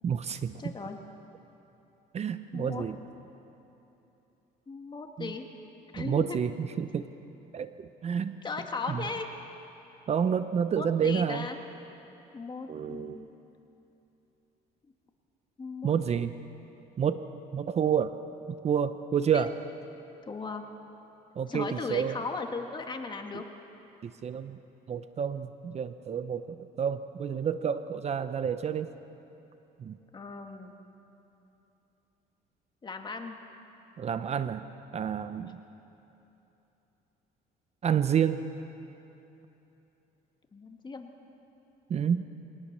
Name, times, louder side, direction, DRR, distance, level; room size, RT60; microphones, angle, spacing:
voice 1, 0.0-0.6 2.1-3.0 5.2-5.3 6.0-7.1 7.5-8.4 8.9-9.0 10.1-11.5 12.7-13.2 15.8-16.3 17.0-17.2 17.5-18.1 18.6-19.5 21.4-22.2 24.0-24.6 24.9-28.9 29.8-30.0 34.0-34.6 34.9-35.5 37.8-38.4 41.9-42.3, right 8 dB, 40° right, 11 dB, 0.7 m, -29 dB
voice 2, 0.6-1.0 2.5-2.8 4.7-5.4 5.9-6.4 8.4-9.3 10.7-11.6 12.3-13.3 15.6-16.2 19.3-19.5 20.3-20.6 21.5-23.4 30.1-30.8 32.8-33.4 40.5-41.1, left 4 dB, 25° left, 4 dB, 1.8 m, -37 dB
22.5 x 18.5 x 6.7 m, 3.0 s
cardioid pair, 110°, 17 cm